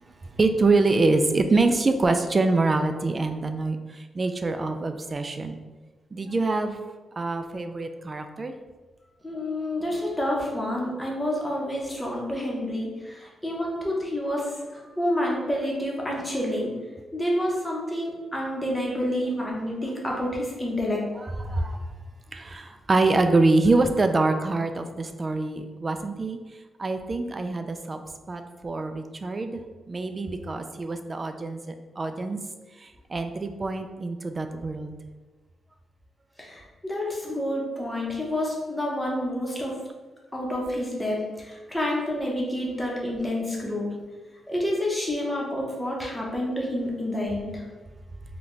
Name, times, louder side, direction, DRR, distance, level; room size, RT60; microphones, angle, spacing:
voice 1, 0.0-5.6 6.1-6.8 7.2-8.5 21.2-21.8 22.3-26.4 26.8-28.0 28.3-29.6 29.9-32.4 32.8-35.0, right 3 dB, 30° right, 7 dB, 0.3 m, -25 dB
voice 2, 9.2-16.7 17.1-21.0 36.4-39.8 40.3-43.9 44.5-47.7, left 1 dB, 10° left, -3 dB, 0.9 m, -28 dB
4.0 x 2.3 x 3.1 m, 1.3 s
cardioid pair, 105°, 0 cm